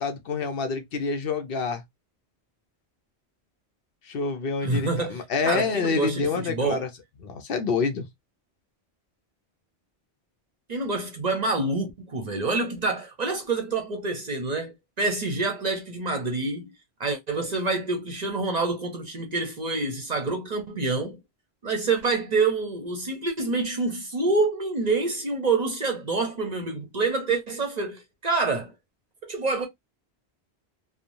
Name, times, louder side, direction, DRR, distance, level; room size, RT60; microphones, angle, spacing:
voice 1, 0.0-1.8 4.0-6.9 7.2-8.1, left 4 dB, 65° left, 0.8 m, -27 dB
voice 2, 4.6-6.8 10.7-16.7 17.0-21.2 21.6-28.7 29.2-29.7, right 3 dB, 45° right, 0.6 m, -27 dB
3.1 x 2.0 x 2.5 m
omnidirectional pair, 1.1 m